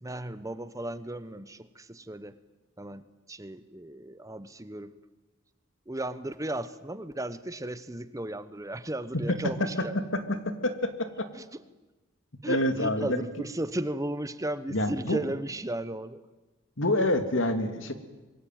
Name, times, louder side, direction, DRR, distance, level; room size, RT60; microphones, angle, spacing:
voice 1, 0.0-2.4 2.8-4.9 5.9-9.9 11.3-11.6 12.4-16.2, right 1 dB, 15° right, 14 dB, 0.9 m, -35 dB
voice 2, 10.6-11.3 12.4-13.3 14.7-15.2 16.8-17.9, left 1 dB, 70° left, 9 dB, 2.7 m, -27 dB
26.0 x 22.5 x 9.3 m, 1.1 s
head